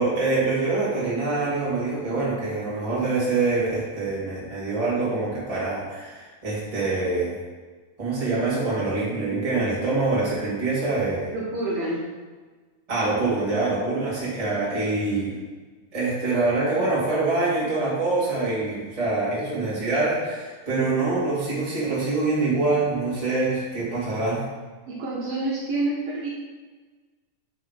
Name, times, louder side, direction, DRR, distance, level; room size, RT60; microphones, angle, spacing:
voice 1, 0.0-7.3 8.0-11.3 12.9-15.4 15.9-24.4, right 3 dB, 35° right, -8 dB, 0.5 m, -25 dB
voice 2, 11.3-12.0 24.9-26.3, right 2 dB, 70° right, -5 dB, 2.3 m, -27 dB
5.6 x 5.1 x 5.6 m, 1.4 s
omnidirectional pair, 5.3 m